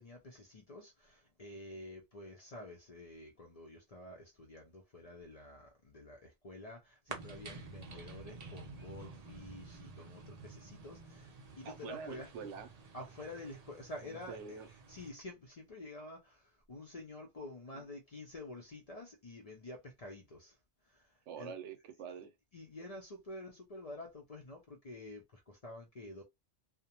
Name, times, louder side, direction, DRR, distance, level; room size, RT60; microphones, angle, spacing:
voice 1, 0.0-12.3 12.9-14.6 14.9-20.6 20.9-21.5 22.5-26.2, left 1 dB, 45° left, 0.5 m, -49 dB
sound 1, 7.1-15.1, right 4 dB, 50° right, 0.5 m, -50 dB
voice 2, 11.6-12.7 14.0-14.7 17.7-17.8 21.3-22.3, right 6 dB, 80° right, 0.9 m, -46 dB
2.4 x 2.1 x 2.8 m
omnidirectional pair, 1.2 m